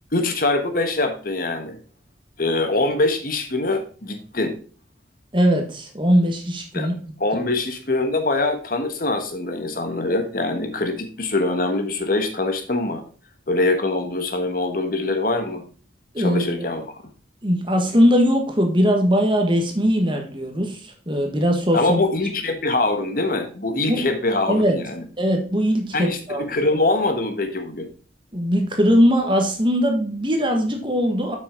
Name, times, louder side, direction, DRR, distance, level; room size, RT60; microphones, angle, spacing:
voice 1, 0.1-1.8 2.4-4.5 6.7-6.9 7.2-13.0 13.5-15.6 16.2-17.0 21.7-25.0 25.9-27.9, left 2 dB, 50° left, 7 dB, 1.3 m, -23 dB
voice 2, 5.3-6.9 7.3-7.4 16.1-16.7 17.4-22.0 23.9-24.0 24.5-24.8 25.2-26.5 28.3-31.4, equal, 25° right, 3 dB, 1.5 m, -20 dB
8.0 x 6.1 x 3.8 m, 0.40 s
head